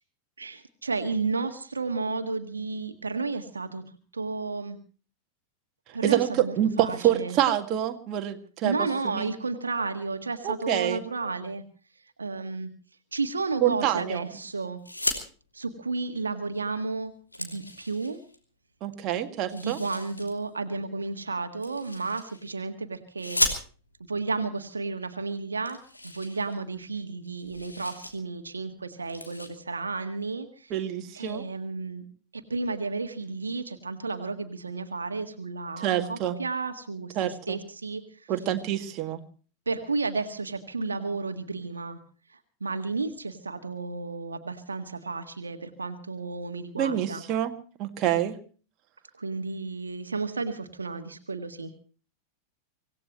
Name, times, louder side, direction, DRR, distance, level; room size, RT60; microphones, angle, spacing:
voice 1, 0.4-3.8 4.1-4.8 5.9-7.4 8.6-11.6 12.2-12.7 13.1-14.8 15.5-17.1 17.4-18.2 19.5-23.4 24.1-25.8 26.0-30.7 31.1-32.0 32.3-38.3 39.6-42.0 42.3-47.2 49.2-51.7, right 3 dB, 75° right, 8 dB, 1.6 m, -32 dB
voice 2, 6.0-8.8 9.1-9.3 10.4-11.0 13.6-14.3 18.8-19.8 30.7-31.4 35.8-36.4 37.2-37.6 38.3-39.2 46.8-47.5 47.8-48.4, right 11 dB, 35° right, 5 dB, 1.9 m, -26 dB
sound 1, 14.8-15.2 16.5-16.6 17.0-18.4 19.4-20.3 21.6-22.5 23.2-24.0 24.9-25.0 25.2-25.3 25.6-27.0 27.2-28.1 28.5-28.7 29.0-29.5, left 1 dB, 85° left, 2.9 m, -34 dB
25.5 x 17.5 x 3.1 m, 0.40 s
figure-of-eight pair, 90°, 0 cm